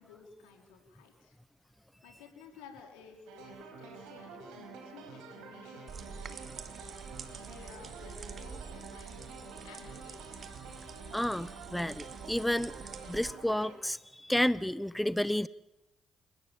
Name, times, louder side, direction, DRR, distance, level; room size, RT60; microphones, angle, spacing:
voice 1, 0.0-1.4 2.0-6.7 7.3-10.5, left 5 dB, 85° left, 3 dB, 4.5 m, -54 dB
sound 1, 3.3-13.8, right 4 dB, 80° right, 5.0 m, -48 dB
sound 2, 5.9-13.3, right 6 dB, 55° right, 2.6 m, -47 dB
voice 2, 11.1-12.7 13.1-15.5, left 1 dB, 5° left, 19 dB, 0.8 m, -31 dB
29.0 x 18.5 x 7.3 m, 0.95 s
hypercardioid pair, 45°, 0 cm